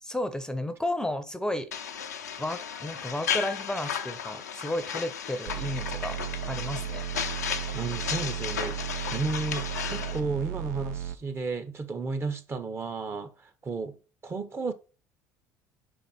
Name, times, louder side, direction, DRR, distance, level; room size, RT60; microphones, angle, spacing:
voice 1, 0.0-1.7 2.4-6.2 6.5-7.0, left 1 dB, 10° left, 0.7 m, -32 dB
sound 1, 1.7-10.2, left 7 dB, 85° left, 0.6 m, -34 dB
sound 2, 5.5-11.2, right 11 dB, 70° right, 0.4 m, -35 dB
voice 2, 7.7-8.8 9.1-14.0 14.2-14.7, right 4 dB, 30° right, 0.9 m, -33 dB
5.2 x 4.3 x 4.2 m
hypercardioid pair, 60°, 9 cm